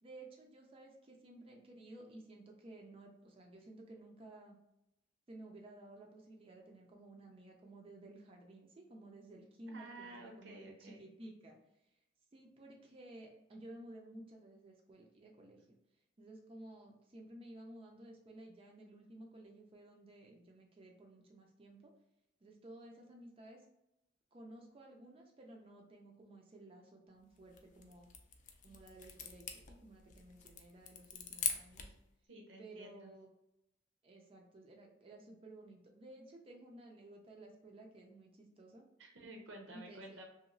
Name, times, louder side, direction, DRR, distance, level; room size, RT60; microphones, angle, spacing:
voice 1, 0.0-4.6 5.3-11.6 11.9-12.0 12.3-15.8 16.2-21.9 22.4-23.7 24.3-28.1 28.6-31.9 32.6-33.3 34.0-38.9 39.7-40.2, right 1 dB, 30° right, 1 dB, 0.4 m, -55 dB
voice 2, 9.7-11.1 32.3-33.1 39.0-40.2, right 2 dB, 80° right, 1 dB, 0.6 m, -52 dB
sound 1, 27.4-32.0, left 7 dB, 45° left, 0.3 m, -43 dB
2.9 x 2.7 x 2.5 m, 0.85 s
head